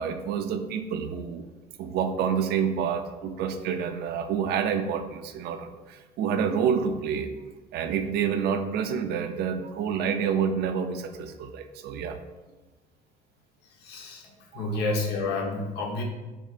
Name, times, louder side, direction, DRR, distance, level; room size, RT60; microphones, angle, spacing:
voice 1, 0.0-1.4 1.8-7.3 7.7-12.2 14.5-14.7, right 7 dB, 70° right, 8 dB, 0.4 m, -28 dB
voice 2, 13.8-14.3 14.5-16.0, left 2 dB, 80° left, 0 dB, 0.8 m, -29 dB
4.8 x 3.5 x 2.4 m, 1.2 s
cardioid pair, 110°, 17 cm